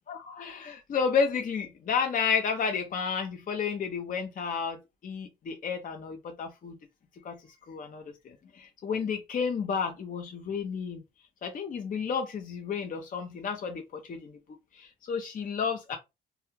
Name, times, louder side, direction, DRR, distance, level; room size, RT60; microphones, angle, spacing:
voice 1, 0.1-6.8 7.2-7.4 7.7-11.0 11.4-14.3 14.7-16.0, left 6 dB, 45° left, 0.6 m, -31 dB
2.3 x 2.2 x 3.0 m
cardioid pair, 90°, 20 cm